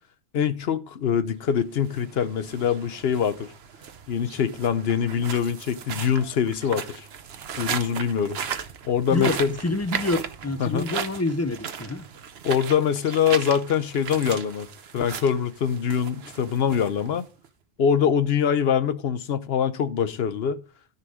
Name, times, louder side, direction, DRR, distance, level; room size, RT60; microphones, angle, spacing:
voice 1, 0.3-3.5 4.1-7.1 7.6-8.4 8.8-9.5 10.6-10.8 12.4-14.7 14.9-17.2 17.8-20.6, left 8 dB, 70° left, 1.0 m, -24 dB
sound 1, 1.7-17.5, right 7 dB, 75° right, 1.1 m, -36 dB
voice 2, 9.1-12.0, left 2 dB, 20° left, 0.6 m, -27 dB
13.5 x 5.6 x 5.0 m
omnidirectional pair, 1.1 m